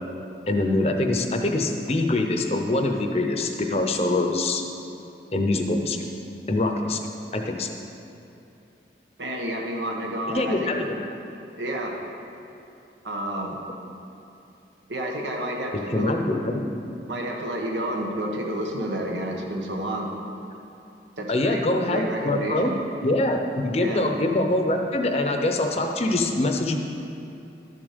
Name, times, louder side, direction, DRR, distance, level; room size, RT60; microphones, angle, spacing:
voice 1, 0.5-4.6 5.3-6.1 6.5-7.0 7.3-7.8 10.3-11.1 15.9-16.7 21.3-22.7 23.0-26.8, left 2 dB, 35° left, 4 dB, 0.7 m, -24 dB
voice 2, 9.2-10.7 11.6-11.9 13.0-13.6 14.9-16.1 17.1-20.1 21.2-21.6 21.9-22.7 23.8-24.0, right 1 dB, 90° right, 0 dB, 1.5 m, -30 dB
12.5 x 7.3 x 5.2 m, 2.7 s
head